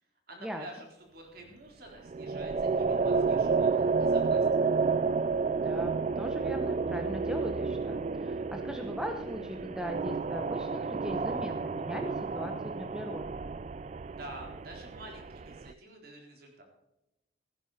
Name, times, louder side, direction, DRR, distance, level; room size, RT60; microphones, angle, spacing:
voice 1, 0.3-4.7 14.1-16.6, right 1 dB, 50° right, 0 dB, 3.9 m, -49 dB
sound 1, 2.1-15.7, right 4 dB, 35° right, 0.3 m, -30 dB
voice 2, 5.5-13.4, equal, 5° right, 4 dB, 0.9 m, -39 dB
16.0 x 10.0 x 4.2 m, 0.91 s
head